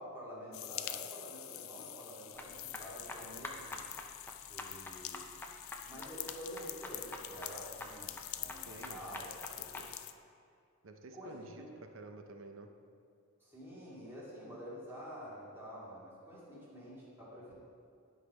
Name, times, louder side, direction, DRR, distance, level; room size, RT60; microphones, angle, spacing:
voice 1, 0.0-3.9 4.5-5.2 5.9-9.7 11.1-11.6 13.4-17.7, equal, 10° right, -8 dB, 2.1 m, -48 dB
sound 1, 0.5-10.1, left 14 dB, 65° left, 0.3 m, -46 dB
sound 2, 2.4-9.9, left 1 dB, 10° left, 0.5 m, -47 dB
voice 2, 8.6-9.2 9.8-10.0 10.8-12.7, right 2 dB, 60° right, 5 dB, 0.6 m, -51 dB
11.0 x 4.1 x 5.3 m, 2.4 s
head